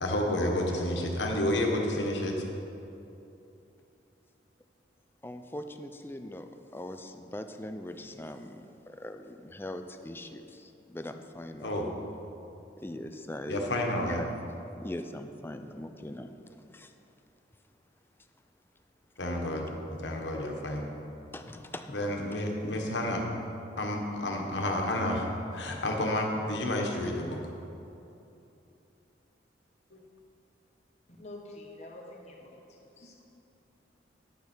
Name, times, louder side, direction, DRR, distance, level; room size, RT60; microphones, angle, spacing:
voice 1, 0.0-2.3 11.6-11.9 13.5-14.2 19.2-20.8 21.9-23.2 23.8-25.3 25.5-27.4 29.9-30.0, left 1 dB, 85° left, 1 dB, 1.4 m, -30 dB
voice 2, 5.2-11.7 12.8-13.7 14.2-14.4 14.8-16.9 21.3-22.2, left 1 dB, 10° left, 7 dB, 0.4 m, -41 dB
voice 3, 31.2-33.3, left 1 dB, 40° left, -2 dB, 1.5 m, -47 dB
10.5 x 8.4 x 4.5 m, 2.8 s
head